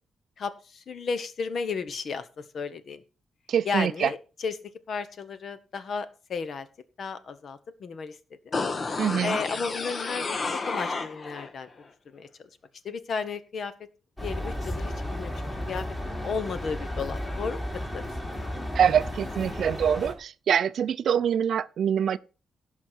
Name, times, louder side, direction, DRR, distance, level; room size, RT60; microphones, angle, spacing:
voice 1, 0.4-2.3 2.5-3.0 3.6-4.6 4.9-6.7 7.0-8.2 8.4-8.6 9.2-11.7 12.1-12.3 12.8-13.7 14.2-15.4 15.7-15.8 16.2-17.7 17.9-18.5, left 5 dB, 50° left, 1.1 m, -33 dB
voice 2, 3.5-4.1 9.0-9.4 18.7-22.2, right 8 dB, 60° right, 0.5 m, -24 dB
sound 1, 8.5-11.5 11.8-11.9, left 3 dB, 35° left, 1.0 m, -31 dB
sound 2, 14.2-20.1, left 1 dB, 15° left, 3.1 m, -33 dB
16.5 x 5.9 x 4.5 m
wide cardioid pair, 145°, 0 cm